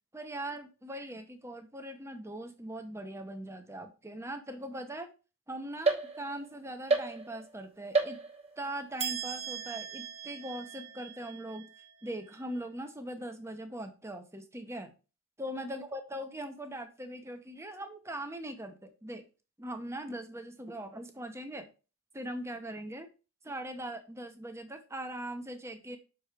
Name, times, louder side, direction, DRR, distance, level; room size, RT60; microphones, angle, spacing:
voice 1, 0.1-5.1 5.5-8.2 8.6-11.7 12.0-14.9 15.4-19.2 19.6-21.7 22.1-23.1 23.4-26.0, right 1 dB, 10° right, 7 dB, 0.9 m, -40 dB
sound 1, 5.9-6.5 6.9-7.6 7.9-8.6 9.0-12.5, right 4 dB, 30° right, 1.1 m, -34 dB
6.2 x 4.7 x 4.9 m, 0.32 s
head